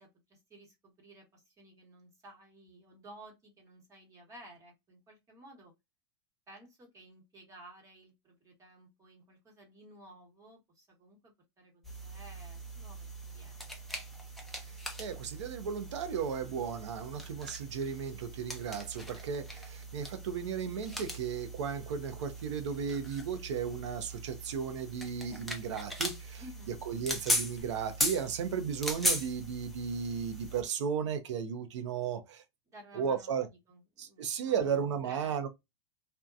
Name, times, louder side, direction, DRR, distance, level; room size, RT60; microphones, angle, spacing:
voice 1, 0.0-5.7 6.5-13.9 26.4-26.8 32.7-35.4, right 1 dB, 20° right, 1.0 m, -55 dB
sound 1, 11.8-30.6, equal, ahead, 0.5 m, -39 dB
voice 2, 15.0-26.4 26.7-32.4 32.9-33.5 34.0-35.5, right 7 dB, 85° right, 0.6 m, -35 dB
2.7 x 2.2 x 2.3 m
supercardioid pair, 140°, 15 cm